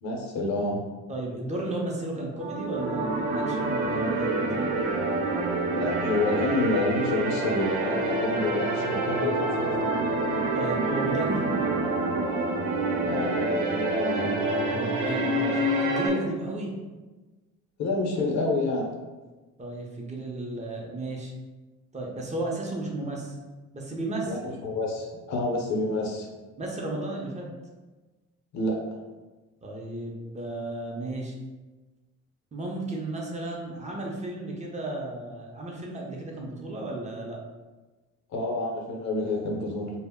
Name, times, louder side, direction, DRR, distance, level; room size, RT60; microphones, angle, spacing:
voice 1, 0.0-0.8 5.7-10.0 13.0-14.5 17.8-18.9 24.2-26.3 28.5-28.8 38.3-39.9, left 2 dB, 65° left, 0 dB, 0.7 m, -28 dB
voice 2, 1.1-4.4 9.2-9.4 10.5-11.5 14.5-16.7 19.6-21.3 21.9-23.4 23.7-24.3 26.6-27.5 29.6-31.3 32.5-37.4, right 2 dB, 25° right, -1 dB, 0.5 m, -34 dB
sound 1, 2.4-16.1, right 2 dB, 90° right, 0.5 m, -27 dB
2.1 x 2.0 x 3.5 m, 1.2 s
cardioid pair, 90°, 30 cm